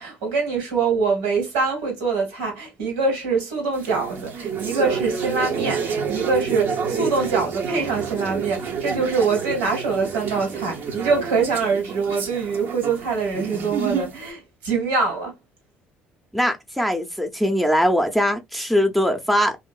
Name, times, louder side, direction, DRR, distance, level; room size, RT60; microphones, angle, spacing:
voice 1, 0.0-15.3, right 4 dB, 80° right, 1.7 m, -24 dB
sound 1, 3.7-14.3, right 6 dB, 55° right, 0.8 m, -28 dB
voice 2, 16.3-19.6, equal, ahead, 0.7 m, -21 dB
2.8 x 2.6 x 2.3 m
hypercardioid pair, 60°, 4 cm